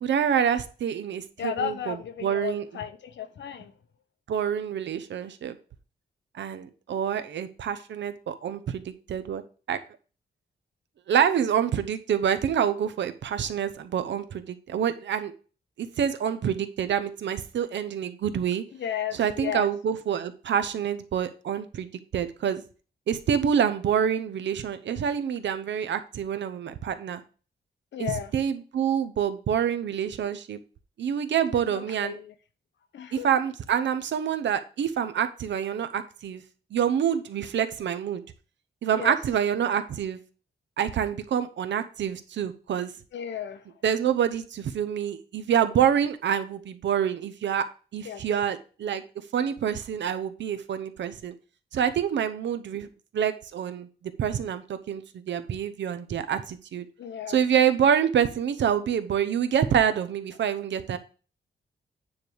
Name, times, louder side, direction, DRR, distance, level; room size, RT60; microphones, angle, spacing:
voice 1, 0.0-1.9 2.2-2.6 4.3-5.5 6.4-9.4 9.7-9.8 11.1-15.3 15.8-18.6 19.1-22.6 23.1-27.2 28.0-30.6 31.0-32.2 33.2-36.4 36.7-38.2 38.8-40.2 40.8-42.9 43.8-49.0 49.3-51.3 51.7-52.9 53.1-53.9 54.2-56.8 57.3-61.0, right 8 dB, 90° right, 0.8 m, -27 dB
voice 2, 1.4-3.7 18.7-19.7 27.9-28.3 31.5-32.3 32.9-33.3 38.9-39.1 43.1-43.6 48.0-48.2 57.0-57.4, left 9 dB, 90° left, 0.9 m, -34 dB
9.5 x 3.4 x 6.2 m
wide cardioid pair, 125°, 18 cm